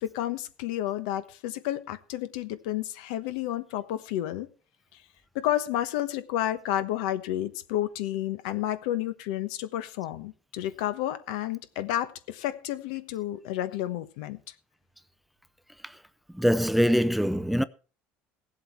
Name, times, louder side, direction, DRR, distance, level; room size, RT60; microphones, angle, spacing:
voice 1, 0.0-4.5 5.3-14.4, left 13 dB, 85° left, 1.1 m, -31 dB
voice 2, 16.3-17.6, equal, ahead, 0.5 m, -23 dB
17.0 x 7.9 x 4.6 m
supercardioid pair, 110°, 4 cm